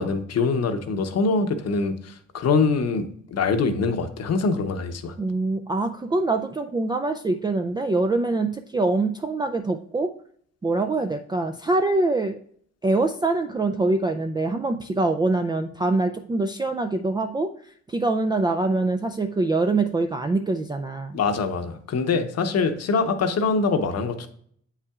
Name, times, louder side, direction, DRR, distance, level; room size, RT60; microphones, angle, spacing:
voice 1, 0.0-5.1 21.1-24.3, left 4 dB, 55° left, 8 dB, 0.9 m, -24 dB
voice 2, 5.2-10.1 10.6-12.4 12.8-17.5 17.9-21.2, right 2 dB, 15° right, 4 dB, 0.3 m, -24 dB
8.1 x 5.7 x 2.4 m, 0.62 s
cardioid pair, 90°, 30 cm